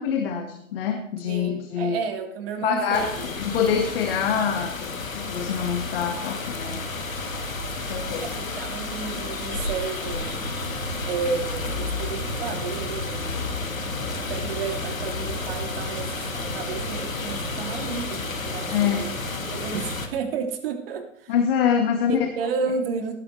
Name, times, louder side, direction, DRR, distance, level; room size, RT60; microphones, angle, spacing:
voice 1, 0.0-2.0 2.6-6.8 7.9-8.3 18.7-19.3 21.3-22.1, left 7 dB, 45° left, 4 dB, 1.9 m, -25 dB
voice 2, 1.3-3.3 8.2-10.4 11.0-13.5 14.3-19.2 19.5-21.3 22.0-23.1, right 5 dB, 45° right, 4 dB, 2.8 m, -32 dB
sound 1, 2.9-20.1, left 4 dB, 80° left, 2.2 m, -32 dB
sound 2, 10.0-20.1, right 1 dB, 90° right, 3.0 m, -36 dB
19.0 x 11.0 x 3.3 m, 0.71 s
figure-of-eight pair, 125°, 40 cm